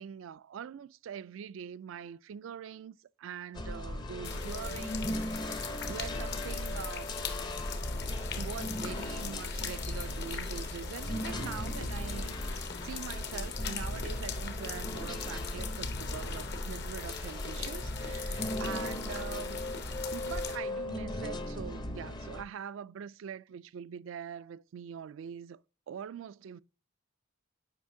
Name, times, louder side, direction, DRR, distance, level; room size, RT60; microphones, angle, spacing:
voice 1, 0.0-7.2 8.3-19.6 20.1-25.6 25.9-26.6, right 8 dB, 70° right, 0.3 m, -43 dB
sound 1, 3.5-22.4, left 1 dB, 20° left, 0.6 m, -39 dB
sound 2, 4.2-20.6, left 3 dB, 60° left, 0.9 m, -39 dB
8.2 x 5.1 x 2.7 m
head